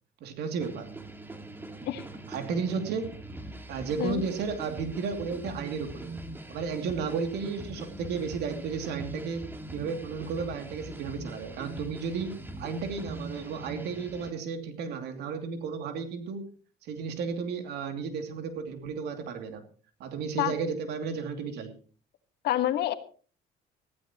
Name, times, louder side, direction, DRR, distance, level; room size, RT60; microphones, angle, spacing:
voice 1, 0.2-0.9 2.3-3.1 3.7-6.1 6.5-9.4 9.7-16.5 16.8-19.6 20.0-21.7, right 5 dB, 75° right, 6 dB, 2.7 m, -33 dB
sound 1, 0.6-14.3, right 2 dB, 10° right, 2.0 m, -42 dB
voice 2, 22.4-22.9, left 13 dB, 75° left, 9 dB, 1.6 m, -27 dB
20.0 x 15.0 x 3.0 m, 0.40 s
cardioid pair, 110°, 17 cm